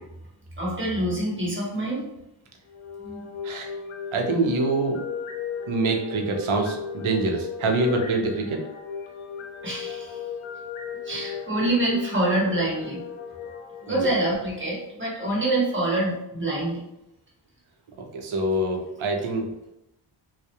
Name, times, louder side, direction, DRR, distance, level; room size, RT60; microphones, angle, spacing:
voice 1, 0.6-2.0 3.0-3.3 9.6-10.2 11.0-13.0 13.8-16.8, right 1 dB, 25° right, -4 dB, 0.9 m, -26 dB
sound 1, 2.7-14.8, left 7 dB, 85° left, 0.6 m, -36 dB
voice 2, 4.1-5.0 5.7-8.6 13.9-14.1 18.1-19.5, right 2 dB, 75° right, 2 dB, 0.6 m, -25 dB
2.3 x 2.1 x 2.8 m, 0.87 s
wide cardioid pair, 80°, 49 cm